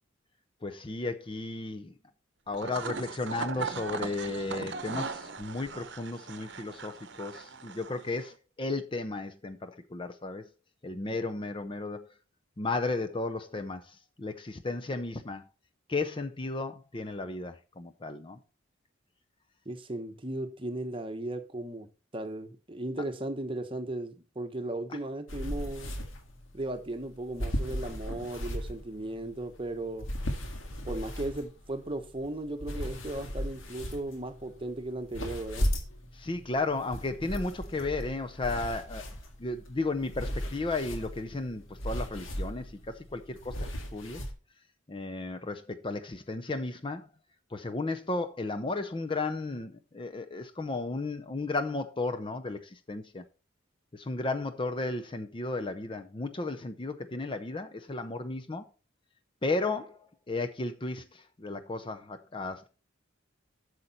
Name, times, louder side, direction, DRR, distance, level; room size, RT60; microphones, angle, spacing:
voice 1, 0.6-1.9 2.5-10.4 10.8-12.1 12.6-15.4 15.9-18.4 36.1-39.1 39.4-43.7 43.9-44.2 44.9-47.1 47.5-53.2 53.9-58.7 59.4-60.0 60.3-62.7, left 3 dB, 25° left, 0.5 m, -34 dB
sound 1, 2.5-8.3, right 5 dB, 60° right, 0.9 m, -39 dB
voice 2, 19.6-21.9 22.1-25.9 26.5-30.1 30.9-35.7, right 1 dB, 25° right, 1.0 m, -36 dB
sound 2, 25.3-44.3, equal, 80° left, 1.7 m, -37 dB
8.4 x 6.5 x 4.2 m
head